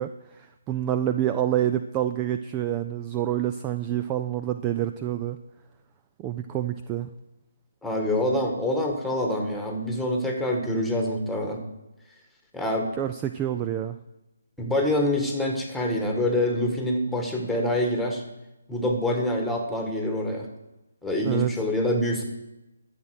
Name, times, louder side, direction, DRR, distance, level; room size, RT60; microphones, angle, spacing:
voice 1, 0.0-5.4 6.2-7.1 13.0-14.0 21.2-21.5, right 11 dB, 20° right, 9 dB, 0.4 m, -27 dB
voice 2, 7.8-11.6 12.5-12.9 14.6-18.2 18.7-20.5 21.0-22.2, left 1 dB, ahead, 2 dB, 1.7 m, -26 dB
11.5 x 7.5 x 6.5 m, 0.96 s
figure-of-eight pair, 150°, 0 cm